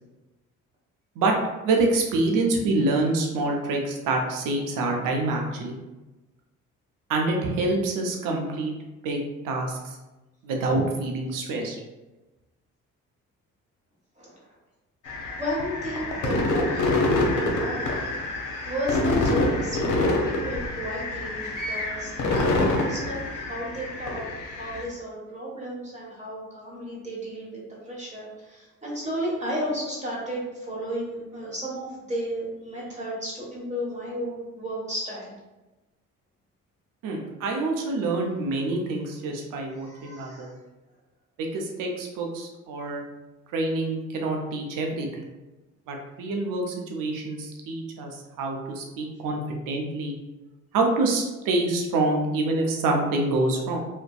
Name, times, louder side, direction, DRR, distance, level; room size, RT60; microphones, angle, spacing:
voice 1, 1.6-5.8 7.1-8.7 9.0-9.2 9.4-10.0 10.4-11.8 37.0-40.5 41.4-43.0 43.5-45.2 45.9-48.1 48.4-50.2 50.7-53.8, right 2 dB, 70° right, 1 dB, 0.6 m, -26 dB
sound 1, 15.1-24.8, left 2 dB, 60° left, 0.7 m, -26 dB
voice 2, 15.3-18.1 18.6-24.2 24.5-27.6 27.8-35.3 39.8-40.5, equal, 20° right, -5 dB, 1.2 m, -33 dB
2.5 x 2.1 x 2.3 m, 1.1 s
supercardioid pair, 60°, 34 cm